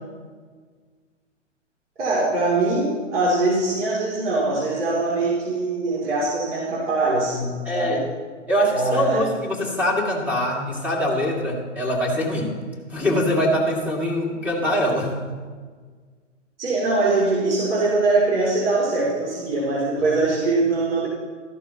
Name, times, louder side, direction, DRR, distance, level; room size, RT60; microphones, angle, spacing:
voice 1, 2.0-8.1 8.7-9.2 16.6-21.1, right 2 dB, 70° right, -6 dB, 3.3 m, -22 dB
voice 2, 7.6-8.0 8.5-12.5 12.9-15.4 20.0-20.2, equal, 5° right, -3 dB, 2.4 m, -23 dB
14.0 x 12.0 x 3.0 m, 1.5 s
hypercardioid pair, 130°, 37 cm